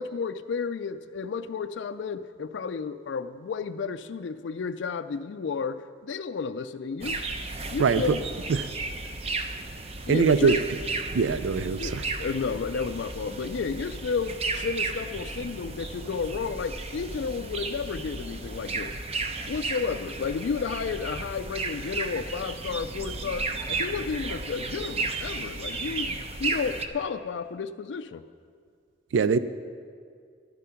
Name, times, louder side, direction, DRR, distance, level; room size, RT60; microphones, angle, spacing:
voice 1, 0.0-7.2 7.7-8.3 10.1-10.6 11.8-19.0 19.5-28.2, left 5 dB, 75° left, 9 dB, 0.4 m, -32 dB
sound 1, 7.0-26.9, right 3 dB, 35° right, 0.7 m, -34 dB
voice 2, 10.1-10.6 11.1-12.0 29.1-29.4, right 5 dB, 90° right, 14 dB, 0.4 m, -22 dB
12.0 x 11.5 x 5.8 m, 2.2 s
head